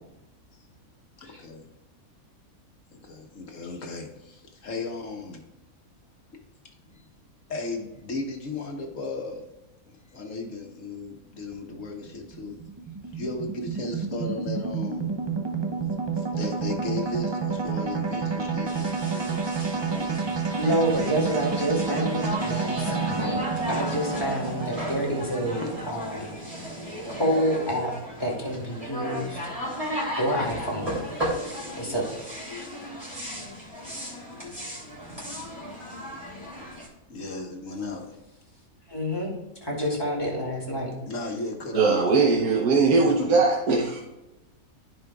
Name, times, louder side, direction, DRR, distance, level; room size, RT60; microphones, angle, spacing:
voice 1, 1.2-1.7 2.9-5.4 6.9-7.1 7.5-9.5 10.1-12.6 13.1-15.1 16.2-19.0 19.7-20.3 23.6-23.9 25.6-25.7 37.1-38.2 41.1-42.4 42.9-43.3, left 3 dB, 60° left, 2 dB, 1.5 m, -35 dB
sound 1, 11.5-27.9, right 5 dB, 45° right, 0.3 m, -30 dB
sound 2, 18.7-36.9, equal, 25° right, 2.9 m, -36 dB
voice 2, 20.6-23.4 23.7-26.4 27.2-27.9 28.2-29.4 30.2-31.1 31.8-32.1 38.9-39.3 39.6-40.9, equal, 15° left, -3 dB, 2.3 m, -28 dB
voice 3, 41.7-44.0, right 4 dB, 85° right, -2 dB, 1.4 m, -20 dB
14.0 x 5.1 x 2.3 m, 0.98 s
omnidirectional pair, 1.6 m